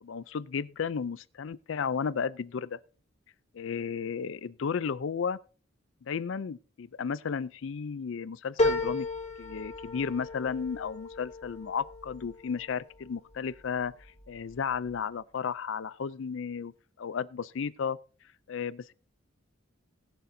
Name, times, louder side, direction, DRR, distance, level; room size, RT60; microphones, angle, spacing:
voice 1, 0.0-2.8 3.6-5.4 6.0-9.1 9.4-16.7 17.0-18.0 18.5-18.9, left 6 dB, 65° left, 0.4 m, -33 dB
sound 1, 8.6-13.3 13.8-14.5 14.9-15.0, left 2 dB, 35° left, 2.3 m, -33 dB
20.0 x 6.8 x 2.7 m
head